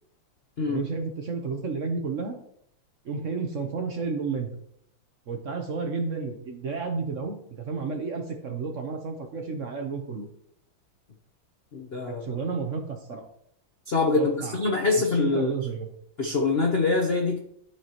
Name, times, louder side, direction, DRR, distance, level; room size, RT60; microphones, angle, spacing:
voice 1, 0.7-2.4 3.0-4.6 5.3-10.3 12.1-13.2 14.1-14.6 14.9-15.9, right 4 dB, 55° right, 3 dB, 0.8 m, -31 dB
voice 2, 11.7-12.2 13.9-15.5 16.2-17.4, left 3 dB, 60° left, 1 dB, 0.6 m, -24 dB
12.5 x 4.8 x 3.0 m, 0.70 s
omnidirectional pair, 2.4 m